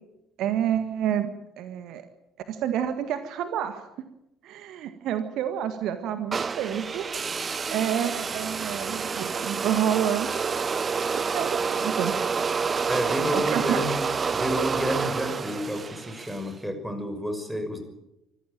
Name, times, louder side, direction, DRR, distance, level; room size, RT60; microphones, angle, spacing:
voice 1, 0.4-2.0 2.5-3.9 4.4-7.1 7.7-12.1 13.3-13.8, right 10 dB, 55° right, 9 dB, 1.8 m, -29 dB
sound 1, 6.3-16.5, right 5 dB, 30° right, 0.7 m, -28 dB
voice 2, 12.9-14.1 14.3-17.8, equal, 5° right, 7 dB, 6.1 m, -30 dB
26.0 x 15.0 x 9.1 m, 0.89 s
figure-of-eight pair, 55°, 0 cm